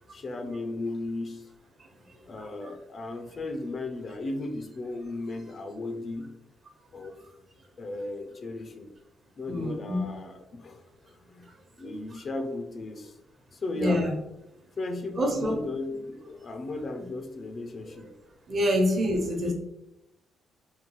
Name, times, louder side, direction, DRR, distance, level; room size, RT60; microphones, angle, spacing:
voice 1, 0.1-1.5 2.3-6.4 6.9-7.2 7.8-8.9 9.4-10.8 11.3-11.5 11.8-13.1 13.5-14.0 14.8-18.1 19.4-19.5, left 2 dB, 45° left, 6 dB, 0.4 m, -35 dB
voice 2, 2.1-2.7 7.2-7.3 9.5-10.2 11.8-12.2 13.8-14.2 15.2-15.6 18.5-19.5, equal, 45° right, 2 dB, 0.9 m, -28 dB
3.7 x 2.3 x 3.0 m, 0.88 s
cardioid pair, 90°, 0 cm